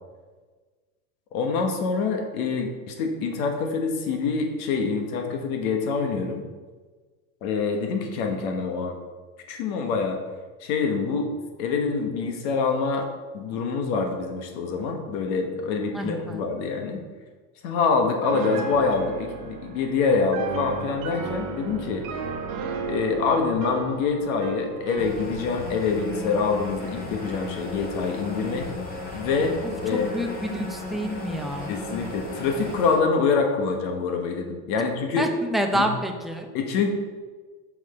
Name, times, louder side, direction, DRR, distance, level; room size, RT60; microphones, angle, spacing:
voice 1, 1.3-6.5 7.4-8.9 9.5-10.2 10.6-11.3 11.6-13.1 13.3-17.0 17.6-22.0 22.8-28.7 29.1-29.5 29.8-30.1 31.7-35.2 35.7-35.9 36.5-36.9, left 4 dB, 65° left, 3 dB, 1.3 m, -25 dB
voice 2, 15.9-16.4 29.6-31.8 35.2-36.5, equal, ahead, 3 dB, 0.5 m, -28 dB
Piano, 18.2-25.2, right 4 dB, 45° right, 1.1 m, -34 dB
sound 1, 25.0-33.0, left 3 dB, 20° left, 1.7 m, -35 dB
6.2 x 6.0 x 4.3 m, 1.4 s
supercardioid pair, 120°, 45 cm